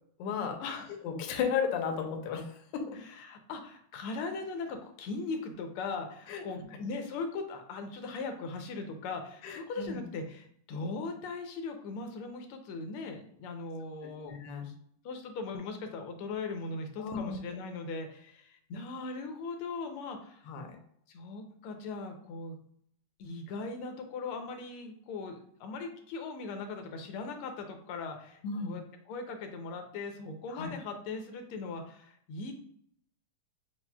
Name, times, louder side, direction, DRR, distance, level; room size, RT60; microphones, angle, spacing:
voice 1, 0.2-0.6 0.9-3.0 6.3-6.4 9.4-10.0 14.2-14.7 17.0-17.6 20.5-20.8 28.4-28.7 30.5-30.7, left 6 dB, 70° left, 4 dB, 1.2 m, -34 dB
voice 2, 3.1-14.7 15.0-20.4 21.1-22.6 23.2-32.5, left 3 dB, 90° left, 5 dB, 1.6 m, -39 dB
7.1 x 2.4 x 2.2 m, 0.66 s
omnidirectional pair, 2.3 m